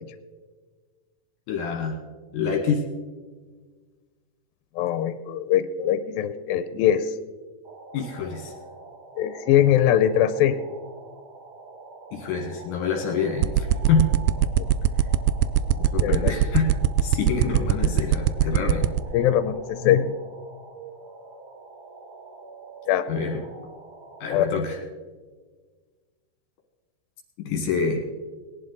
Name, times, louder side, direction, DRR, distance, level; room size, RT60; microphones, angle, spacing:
voice 1, 1.5-2.0 2.3-2.8 7.9-8.5 12.1-14.1 15.0-15.1 15.8-16.7 17.0-18.9 23.1-23.4 24.2-24.8 27.4-28.0, left 5 dB, 70° left, 1 dB, 2.8 m, -26 dB
voice 2, 4.8-7.1 9.2-10.5 14.6-14.7 16.0-16.3 19.1-20.1 22.9-23.0 24.3-24.5, left 10 dB, 90° left, 12 dB, 2.4 m, -21 dB
sound 1, 7.6-24.6, right 4 dB, 60° right, 1.3 m, -45 dB
sound 2, 13.4-19.0, right 13 dB, 80° right, 1.9 m, -18 dB
19.5 x 11.0 x 4.0 m, 1.4 s
omnidirectional pair, 4.1 m